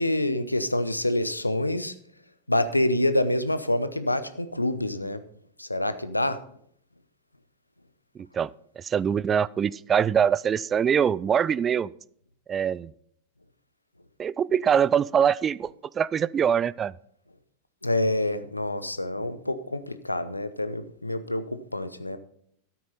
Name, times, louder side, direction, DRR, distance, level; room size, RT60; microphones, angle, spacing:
voice 1, 0.0-1.9 2.5-5.2 5.6-6.4 17.8-22.2, left 1 dB, 85° left, 12 dB, 0.8 m, -27 dB
voice 2, 8.8-11.9 12.5-12.9 14.2-15.7 16.0-16.9, right 8 dB, 25° right, 22 dB, 0.3 m, -23 dB
13.0 x 8.7 x 4.2 m, 0.65 s
figure-of-eight pair, 90°, 0 cm